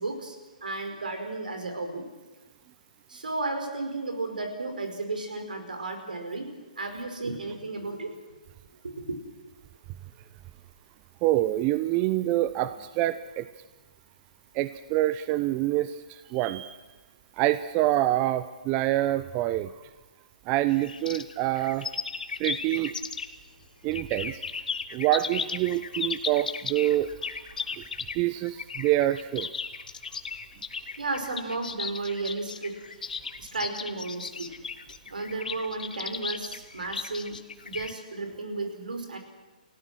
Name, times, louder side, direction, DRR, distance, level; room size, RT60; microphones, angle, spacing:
voice 1, 0.0-2.1 3.1-8.1 8.8-9.2 31.0-32.8 33.4-34.5 35.1-37.4 37.6-39.2, right 3 dB, 80° right, 6 dB, 5.0 m, -33 dB
voice 2, 11.2-12.7 13.0-13.4 14.6-15.9 16.3-16.7 17.4-19.7 20.5-21.8 22.4-22.9 23.8-24.3 24.9-27.1 28.2-29.5, right 15 dB, 30° right, 13 dB, 0.7 m, -26 dB
sound 1, 20.7-23.5 23.9-37.9, left 5 dB, 75° left, 1.6 m, -35 dB
29.0 x 17.0 x 6.3 m, 1.2 s
figure-of-eight pair, 135°, 5 cm